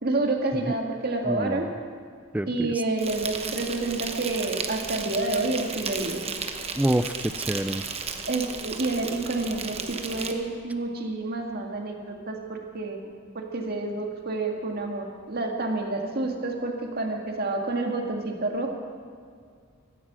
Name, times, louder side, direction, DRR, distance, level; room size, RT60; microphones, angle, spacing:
voice 1, 0.0-1.7 2.5-6.2 8.3-18.7, right 2 dB, 45° right, 2 dB, 2.0 m, -29 dB
voice 2, 1.3-1.7 2.3-2.7 6.8-7.8, right 1 dB, 5° right, 11 dB, 0.3 m, -27 dB
Insect, 3.0-10.3, right 5 dB, 30° right, 1.0 m, -34 dB
16.0 x 14.0 x 6.2 m, 2.1 s
head